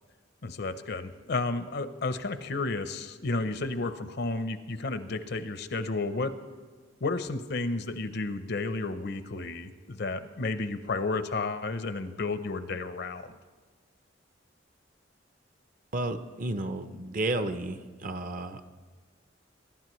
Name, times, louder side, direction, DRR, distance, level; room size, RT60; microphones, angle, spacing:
voice 1, 0.4-6.4 7.0-13.3, left 3 dB, 60° left, 11 dB, 0.7 m, -32 dB
voice 2, 15.9-18.7, right 2 dB, 45° right, 9 dB, 0.7 m, -32 dB
22.5 x 11.5 x 3.1 m, 1.4 s
head